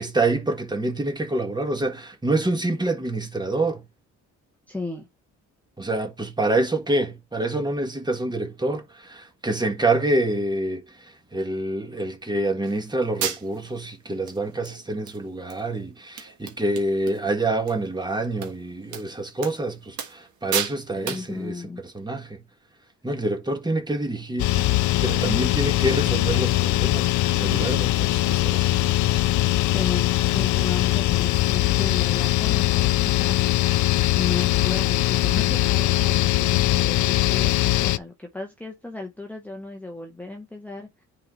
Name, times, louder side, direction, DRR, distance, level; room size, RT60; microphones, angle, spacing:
voice 1, 0.0-3.8 5.8-22.4 23.0-24.7 25.0-29.2, right 2 dB, 15° right, 1.5 m, -27 dB
voice 2, 4.7-5.1 21.0-21.8 29.6-33.5 33.7-41.1, left 3 dB, 5° left, 1.0 m, -36 dB
sound 1, 12.7-12.8 13.2-13.7 14.3-14.4 14.7-15.2 15.5-15.6 15.9-16.0 16.2-17.2 17.5-17.7 18.4-18.5 18.9-19.0 19.4-19.6 20.0-20.3 20.5-20.8 21.1-21.3, right 8 dB, 75° right, 1.6 m, -31 dB
sound 2, 24.4-38.0, left 16 dB, 75° left, 0.5 m, -21 dB
9.6 x 4.0 x 3.1 m
cardioid pair, 90°, 30 cm